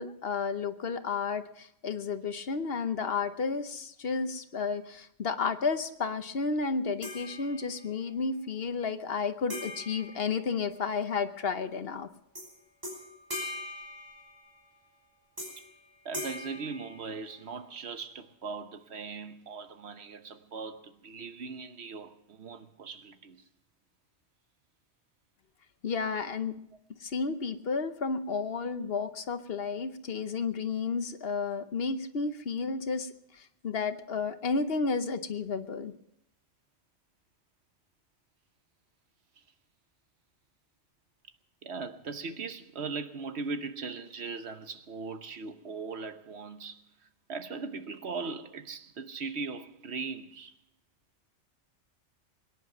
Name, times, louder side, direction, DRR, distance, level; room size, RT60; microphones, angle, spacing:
voice 1, 0.0-12.1 25.8-26.5 27.0-35.9, left 5 dB, 60° left, 1.1 m, -32 dB
sound 1, 7.0-8.0 9.5-11.1 12.3-12.5 12.8-14.7 15.4-15.8 16.1-17.6, left 1 dB, 15° right, 5.0 m, -41 dB
voice 2, 16.0-23.4 39.4-39.5 41.6-50.6, right 4 dB, 65° right, 1.2 m, -39 dB
22.5 x 10.5 x 6.0 m
omnidirectional pair, 1.2 m